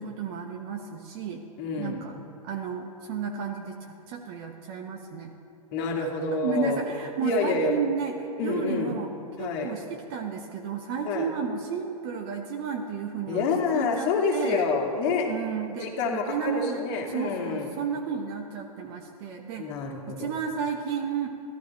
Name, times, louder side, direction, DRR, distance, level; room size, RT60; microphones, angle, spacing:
voice 1, 0.0-1.4 1.8-5.3 6.0-6.1 6.4-9.1 9.4-13.5 13.7-14.7 15.3-16.8 17.1-19.7 20.1-21.3, right 6 dB, 40° right, 2 dB, 1.1 m, -32 dB
voice 2, 1.6-2.0 5.7-6.8 7.2-7.7 8.4-8.9 9.4-9.7 11.0-11.3 13.3-15.3 15.7-17.7 19.6-20.3, left 4 dB, 40° left, 1 dB, 2.1 m, -27 dB
13.5 x 12.5 x 4.2 m, 2.6 s
figure-of-eight pair, 110°, 19 cm